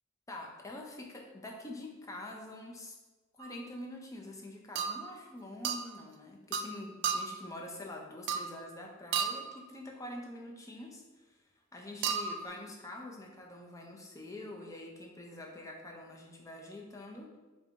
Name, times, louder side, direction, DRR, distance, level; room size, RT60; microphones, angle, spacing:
voice 1, 0.3-3.0 3.4-11.4 11.7-17.4, left 1 dB, 15° left, 0 dB, 0.5 m, -46 dB
sound 1, 3.4-3.6 4.8-5.1 5.6-5.9 6.5-6.7 7.0-7.4 8.3-8.6 9.1-9.6 12.0-12.5, right 6 dB, 60° right, 0.3 m, -33 dB
3.3 x 2.6 x 4.4 m, 1.2 s
head